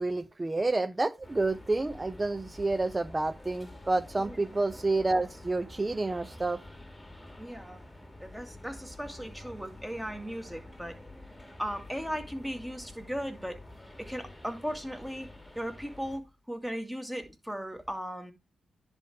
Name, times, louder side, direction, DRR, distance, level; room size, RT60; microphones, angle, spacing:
voice 1, 0.0-6.6, right 2 dB, 25° right, 0.9 m, -29 dB
sound 1, 1.2-16.2, left 1 dB, 10° left, 2.0 m, -49 dB
voice 2, 4.2-4.6 7.4-7.8 8.2-11.0 11.6-13.6 14.0-15.3 15.6-16.2 16.5-18.3, equal, 5° right, 2.1 m, -37 dB
10.5 x 3.6 x 4.6 m
supercardioid pair, 50°, 0 cm